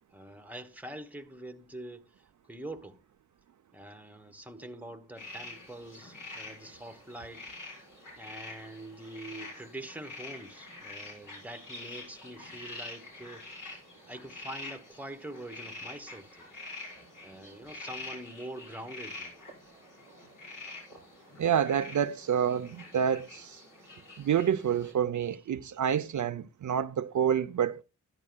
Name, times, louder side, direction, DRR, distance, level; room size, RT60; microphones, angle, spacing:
voice 1, 0.1-3.0 3.7-7.5 8.2-13.8 14.1-16.5 17.2-19.4, right 1 dB, 5° right, 1.1 m, -45 dB
sound 1, 5.2-24.9, left 2 dB, 70° left, 5.9 m, -46 dB
voice 2, 21.4-23.6 24.2-27.8, right 8 dB, 65° right, 0.6 m, -28 dB
14.0 x 11.0 x 2.2 m
wide cardioid pair, 85°, 32 cm